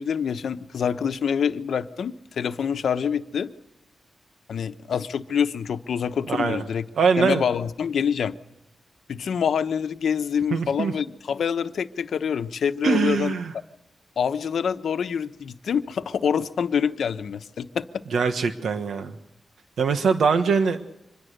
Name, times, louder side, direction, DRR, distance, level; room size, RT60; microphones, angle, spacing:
voice 1, 0.0-3.5 4.5-6.8 7.2-8.4 9.1-13.3 14.2-18.0, left 7 dB, 80° left, 10 dB, 1.0 m, -26 dB
voice 2, 6.3-6.6 7.0-7.4 10.5-10.9 12.8-13.5 18.1-19.1 19.8-20.8, right 5 dB, 85° right, 8 dB, 1.3 m, -22 dB
25.5 x 21.5 x 6.7 m, 0.89 s
wide cardioid pair, 115°, 0 cm